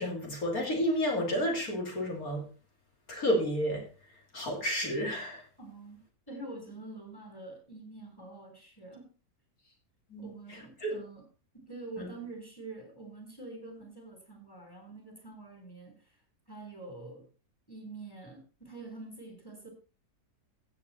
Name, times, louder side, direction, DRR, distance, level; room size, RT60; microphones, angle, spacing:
voice 1, 0.0-2.4 3.1-3.8 4.3-5.4 10.1-10.9 12.0-12.1, equal, 60° left, 1 dB, 3.3 m, -31 dB
voice 2, 5.6-6.0 6.3-9.0 10.2-11.2 11.5-15.9 16.5-17.3 17.7-19.7, right 3 dB, 15° left, 3 dB, 3.7 m, -46 dB
15.5 x 7.8 x 4.2 m, 0.37 s
omnidirectional pair, 1.7 m